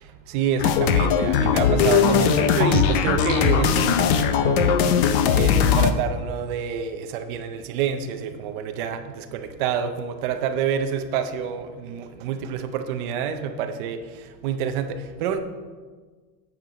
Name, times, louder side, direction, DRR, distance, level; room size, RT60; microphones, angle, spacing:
voice 1, 0.3-4.8 5.3-14.0 14.4-15.4, right 7 dB, 35° right, 7 dB, 0.5 m, -27 dB
sound 1, 0.6-5.9, left 7 dB, 40° left, 0.5 m, -19 dB
9.3 x 7.3 x 5.1 m, 1.4 s
supercardioid pair, 180°, 49 cm